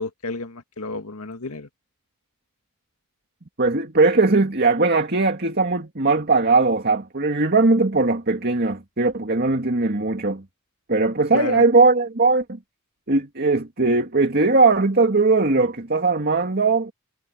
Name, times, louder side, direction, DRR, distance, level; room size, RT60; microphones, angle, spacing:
voice 1, 0.0-1.7 11.3-11.6, left 3 dB, 85° left, 2.0 m, -31 dB
voice 2, 3.6-10.4 10.9-12.6 13.1-16.9, right 3 dB, 45° right, 2.2 m, -19 dB
head